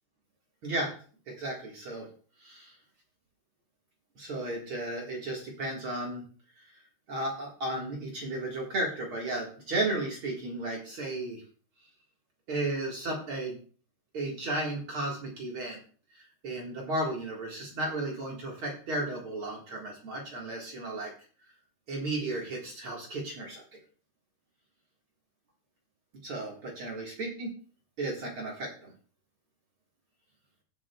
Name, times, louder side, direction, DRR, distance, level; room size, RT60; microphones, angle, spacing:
voice 1, 0.6-0.9 1.3-2.1 2.4-2.7 4.2-6.2 7.1-11.4 12.5-13.6 14.1-15.8 16.4-21.1 21.9-23.6 26.2-27.5 28.0-28.9, right 2 dB, 45° right, -1 dB, 1.8 m, -34 dB
16.5 x 7.3 x 2.3 m, 0.42 s
omnidirectional pair, 4.6 m